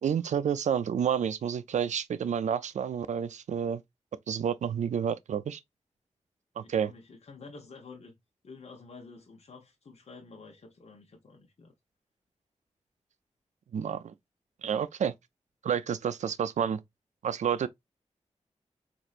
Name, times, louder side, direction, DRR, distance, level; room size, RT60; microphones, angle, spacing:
voice 1, 0.0-3.8 4.3-5.6 6.6-6.9 13.7-14.1 14.6-15.1 15.6-16.8 17.2-17.7, right 8 dB, 85° right, 0.4 m, -29 dB
voice 2, 6.6-8.2 8.4-11.7, left 4 dB, 65° left, 0.8 m, -49 dB
4.2 x 2.6 x 2.4 m
wide cardioid pair, 95°, 12 cm